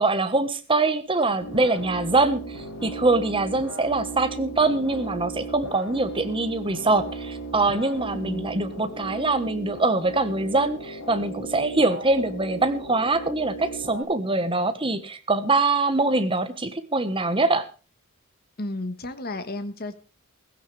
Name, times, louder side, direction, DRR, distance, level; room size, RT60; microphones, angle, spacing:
voice 1, 0.0-17.7, right 2 dB, 25° right, 10 dB, 1.4 m, -23 dB
sound 1, 1.4-14.0, right 3 dB, 80° left, 4.5 m, -37 dB
voice 2, 18.6-20.0, left 2 dB, 45° left, 10 dB, 1.4 m, -32 dB
16.0 x 16.0 x 3.4 m, 0.33 s
head